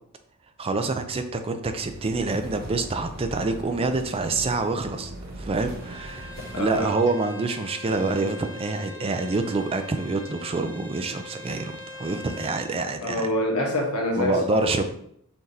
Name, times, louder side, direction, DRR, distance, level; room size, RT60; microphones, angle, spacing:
voice 1, 0.6-5.1 5.4-13.3 14.2-14.8, right 3 dB, 25° right, 7 dB, 0.4 m, -27 dB
sound 1, 1.6-6.9, right 1 dB, 45° right, 0.9 m, -40 dB
Bowed string instrument, 5.8-12.7, left 2 dB, 5° right, 0.8 m, -42 dB
voice 2, 6.5-6.9 13.0-14.8, left 1 dB, 70° left, 1 dB, 1.1 m, -26 dB
5.7 x 3.3 x 2.8 m, 0.69 s
head